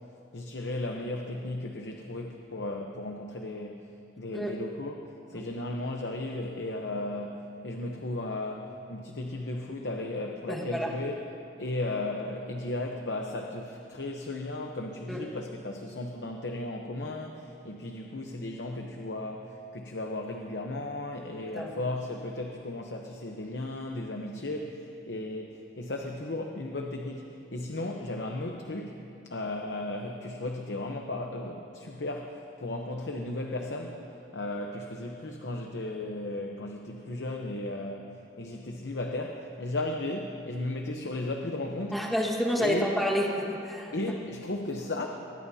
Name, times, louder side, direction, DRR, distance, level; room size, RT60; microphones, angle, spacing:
voice 1, 0.3-3.8 4.2-11.1 11.6-34.0 34.3-42.1 42.6-43.0 43.9-45.1, left 2 dB, 65° left, 2 dB, 0.9 m, -35 dB
voice 2, 10.5-10.9 15.1-15.2 21.5-21.8 41.9-43.9, equal, ahead, -3 dB, 1.6 m, -29 dB
23.0 x 20.0 x 2.8 m, 2.7 s
head